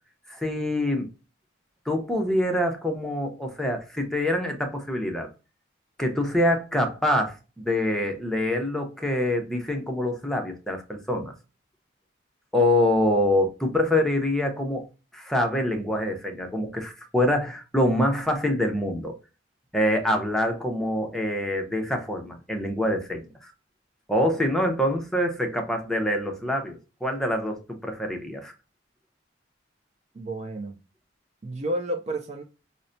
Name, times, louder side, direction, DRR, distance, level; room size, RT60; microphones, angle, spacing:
voice 1, 0.3-1.1 1.9-5.3 6.0-11.3 12.5-14.9 15.1-19.2 19.7-23.5 24.1-28.5, left 1 dB, ahead, 0.6 m, -25 dB
voice 2, 30.1-30.8 31.4-32.4, right 1 dB, 35° right, 0.3 m, -31 dB
5.4 x 2.1 x 2.5 m
head